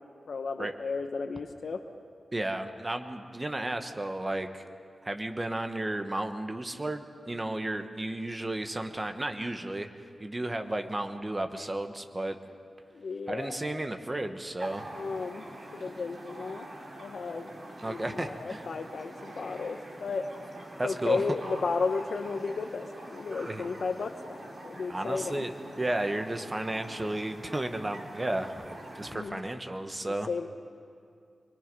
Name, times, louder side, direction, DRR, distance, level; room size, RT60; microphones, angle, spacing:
voice 1, 0.3-1.8 12.9-13.9 14.9-16.7 17.0-17.5 17.8-20.3 20.8-25.5 29.1-29.4 30.0-30.5, left 4 dB, 70° left, 6 dB, 0.9 m, -34 dB
voice 2, 2.3-4.6 5.0-12.4 13.3-14.9 17.8-18.6 20.8-21.4 23.4-23.6 24.9-30.3, right 1 dB, 20° right, 7 dB, 1.2 m, -33 dB
sound 1, 14.6-29.2, right 1 dB, 40° right, 3.4 m, -45 dB
25.5 x 22.0 x 5.4 m, 2.4 s
wide cardioid pair, 125°, 0 cm